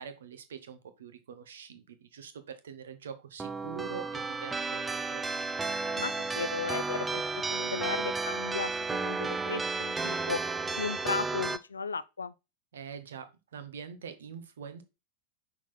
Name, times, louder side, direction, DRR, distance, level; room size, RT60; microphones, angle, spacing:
voice 1, 0.0-5.2 12.7-14.8, right 7 dB, 65° right, 1.0 m, -44 dB
sound 1, 3.4-11.6, right 3 dB, 10° right, 0.4 m, -33 dB
voice 2, 5.9-10.4 10.8-12.3, left 5 dB, 75° left, 0.4 m, -36 dB
6.0 x 4.0 x 4.3 m
figure-of-eight pair, 90°, 0 cm